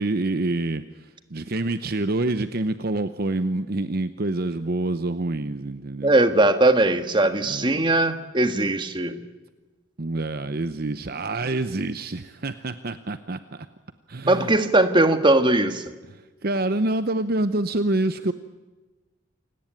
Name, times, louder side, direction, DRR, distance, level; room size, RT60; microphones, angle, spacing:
voice 1, 0.0-6.2 7.5-7.9 10.0-13.7 14.1-14.5 16.1-18.3, right 2 dB, 50° right, 11 dB, 0.8 m, -27 dB
voice 2, 6.0-9.2 14.3-15.8, right 2 dB, 25° right, 9 dB, 1.6 m, -20 dB
28.5 x 18.0 x 9.1 m, 1.2 s
head